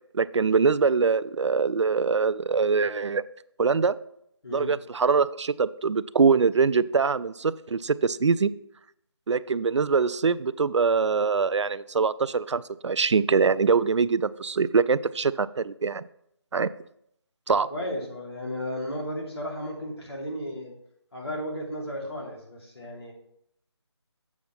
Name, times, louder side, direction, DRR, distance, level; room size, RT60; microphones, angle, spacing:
voice 1, 0.1-3.2 3.6-4.0 4.5-8.5 9.3-16.0 16.5-16.7 17.5-17.7, right 5 dB, 85° right, 18 dB, 0.4 m, -23 dB
voice 2, 17.5-20.7 21.1-23.1, equal, 65° left, -1 dB, 2.3 m, -34 dB
7.2 x 5.8 x 4.0 m, 0.74 s
figure-of-eight pair, 160°, 15 cm